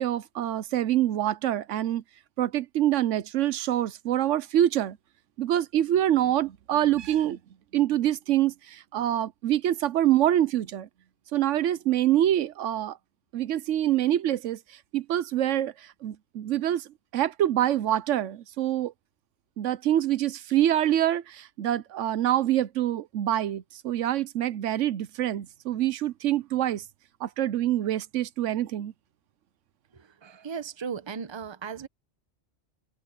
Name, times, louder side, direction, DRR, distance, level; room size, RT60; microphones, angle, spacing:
voice 1, 0.0-2.0 2.4-5.0 5.4-7.4 7.7-10.9 11.3-13.0 13.3-14.6 14.9-15.7 16.0-16.9 17.1-18.9 19.6-26.8 27.2-28.9, right 12 dB, 85° right, 1.0 m, -25 dB
voice 2, 30.2-31.9, right 6 dB, 25° right, 0.7 m, -36 dB
open air
omnidirectional pair, 1.2 m